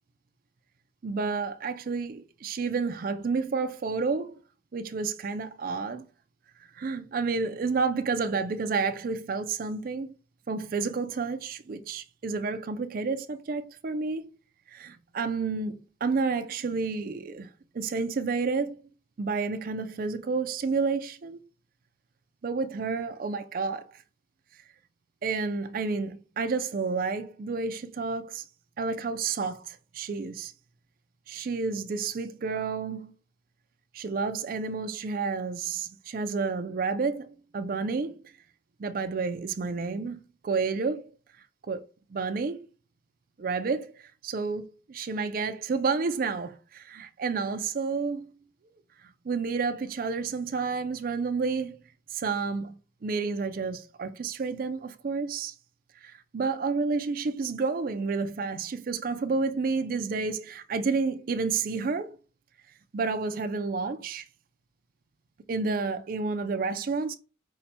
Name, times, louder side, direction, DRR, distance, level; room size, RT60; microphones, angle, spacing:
voice 1, 1.0-4.4 4.7-6.0 6.7-10.1 10.5-14.3 14.7-17.5 17.7-18.8 19.2-21.4 22.4-24.0 25.2-28.4 28.8-30.5 31.3-33.1 33.9-38.2 38.8-41.1 41.7-41.8 42.1-42.7 43.4-48.3 49.2-51.8 52.1-52.8 53.0-55.5 56.0-62.2 62.9-64.3 65.5-67.2, right 4 dB, 50° right, 0.4 m, -30 dB
5.5 x 2.2 x 4.1 m
head